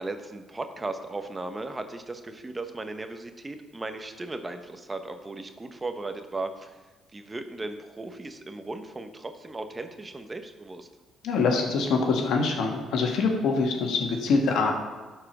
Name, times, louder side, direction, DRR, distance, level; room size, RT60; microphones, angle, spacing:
voice 1, 0.0-10.9, right 2 dB, 25° right, 7 dB, 1.0 m, -36 dB
voice 2, 11.2-14.7, left 4 dB, 70° left, 3 dB, 1.5 m, -24 dB
11.5 x 4.8 x 6.1 m, 1.3 s
hypercardioid pair, 55°, 0 cm